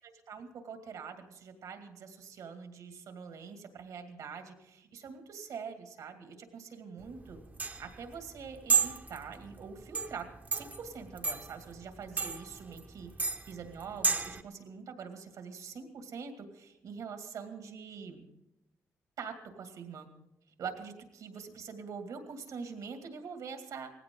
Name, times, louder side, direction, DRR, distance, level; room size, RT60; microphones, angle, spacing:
voice 1, 0.3-7.4 7.8-10.3 10.5-18.2 19.2-20.1 20.6-23.9, right 6 dB, 80° right, 5 dB, 2.3 m, -44 dB
sound 1, 7.0-14.4, right 5 dB, 30° right, 0.9 m, -33 dB
18.5 x 16.0 x 3.8 m, 0.89 s
cardioid pair, 90°, 6 cm